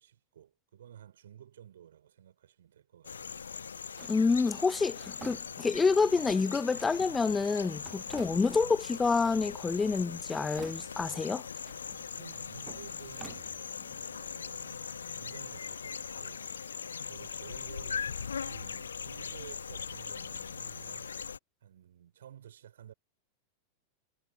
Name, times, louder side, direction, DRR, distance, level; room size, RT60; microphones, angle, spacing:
voice 1, 0.0-3.4 8.1-8.4 12.2-16.5 17.1-21.1 21.6-22.9, right 10 dB, 65° right, 4.2 m, -53 dB
sound 1, 3.0-21.4, left 6 dB, 70° left, 1.1 m, -40 dB
Drawer open or close, 4.0-6.0 6.8-8.9 9.2-10.0 10.3-11.2 11.6-14.0, right 7 dB, 20° right, 1.3 m, -52 dB
voice 2, 4.1-11.4, left 4 dB, 15° left, 0.3 m, -28 dB
figure-of-eight pair, 90°, 0 cm